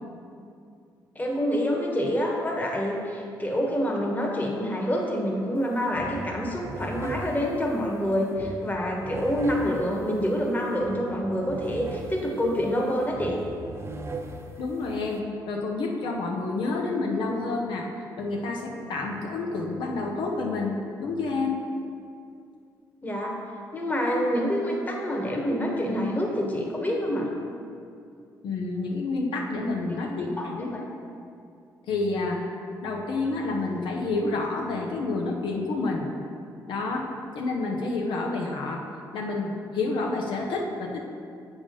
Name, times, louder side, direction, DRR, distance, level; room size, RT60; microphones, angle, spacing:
voice 1, 1.1-13.4 23.0-23.3 23.7-27.3 29.9-30.8, equal, 20° left, -1 dB, 1.3 m, -27 dB
sound 1, 5.6-5.7 5.9-15.2, right 2 dB, 30° right, 0.7 m, -39 dB
voice 2, 14.6-17.9 18.2-20.8 21.0-21.6 28.4-30.7 31.9-32.4 32.8-36.0 36.7-37.1 37.3-38.8 39.1-41.0, left 3 dB, 75° left, 0 dB, 0.7 m, -29 dB
7.4 x 3.6 x 5.2 m, 2.4 s
supercardioid pair, 65°, 8 cm